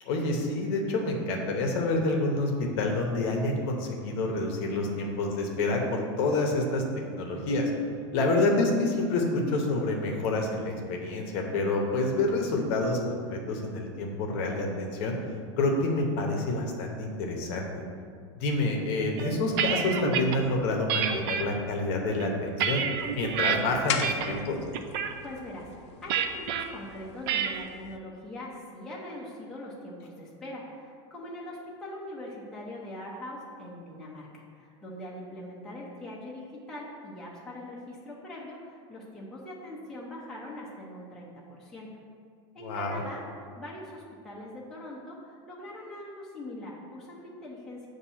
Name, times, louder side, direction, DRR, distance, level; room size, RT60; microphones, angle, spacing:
voice 1, 0.1-7.7 8.1-15.2 15.6-17.8 18.4-22.8 23.1-24.6 42.6-43.0, left 2 dB, 40° left, 1 dB, 0.8 m, -28 dB
sound 1, 19.2-20.4 20.9-21.4 22.0-23.6 24.0-24.4 24.7-25.1 26.1-26.6 27.3-27.6, right 8 dB, 50° right, 0.4 m, -29 dB
sound 2, 23.0-28.0, left 8 dB, 80° left, 0.5 m, -39 dB
voice 2, 25.2-41.9 42.5-43.2 43.6-47.9, left 1 dB, 5° left, -6 dB, 0.6 m, -42 dB
7.3 x 2.7 x 5.6 m, 2.2 s
supercardioid pair, 170°, 15 cm